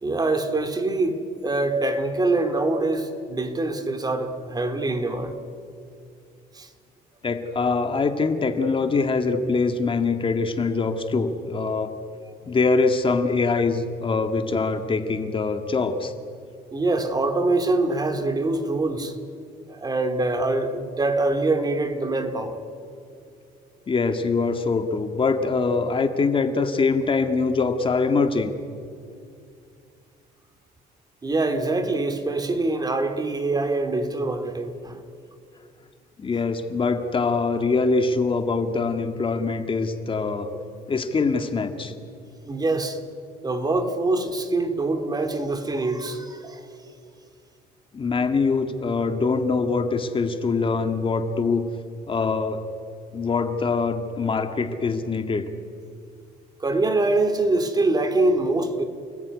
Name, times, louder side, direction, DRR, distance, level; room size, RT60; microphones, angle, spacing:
voice 1, 0.0-5.4 6.5-6.7 12.2-12.3 16.7-19.2 19.7-22.6 31.2-35.0 40.5-40.6 42.5-43.0 43.4-46.9 56.6-58.8, right 2 dB, 25° right, 2.7 m, -24 dB
voice 2, 7.2-11.9 12.5-16.1 23.9-28.5 36.2-40.5 40.9-41.9 47.9-51.7 52.1-52.6 53.1-55.4, left 4 dB, 30° left, 2.0 m, -23 dB
29.5 x 20.0 x 9.8 m
cardioid pair, 110°, 17 cm